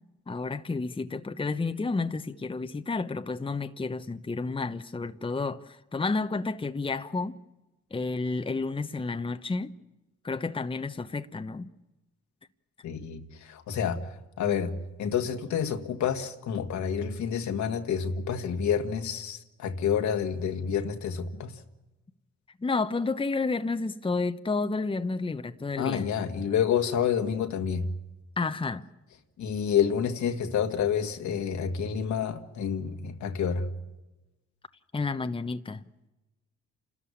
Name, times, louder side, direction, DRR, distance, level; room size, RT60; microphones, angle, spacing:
voice 1, 0.3-7.3 7.9-9.7 10.2-11.7 22.6-26.1 28.4-28.9 34.9-35.8, left 3 dB, 20° left, 1.0 m, -31 dB
voice 2, 12.8-14.0 14.4-14.7 15.0-21.5 25.8-27.9 29.4-33.7, left 7 dB, 75° left, 2.0 m, -28 dB
29.0 x 13.5 x 9.9 m
cardioid pair, 80°, 29 cm